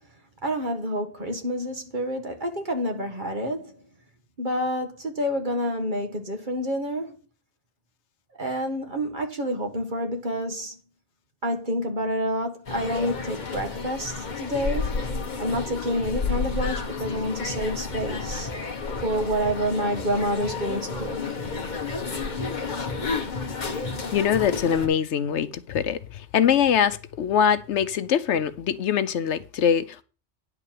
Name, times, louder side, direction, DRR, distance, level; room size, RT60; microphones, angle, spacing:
voice 1, 0.4-3.7 4.4-7.1 8.4-10.7 11.4-15.0 15.4-18.5 19.0-21.2, equal, 40° right, 1.7 m, -28 dB
sound 1, 12.7-24.9, left 4 dB, 40° left, 1.3 m, -31 dB
voice 2, 24.1-26.0 26.3-30.0, left 8 dB, 75° left, 1.0 m, -23 dB
10.0 x 4.7 x 7.5 m
omnidirectional pair, 1.2 m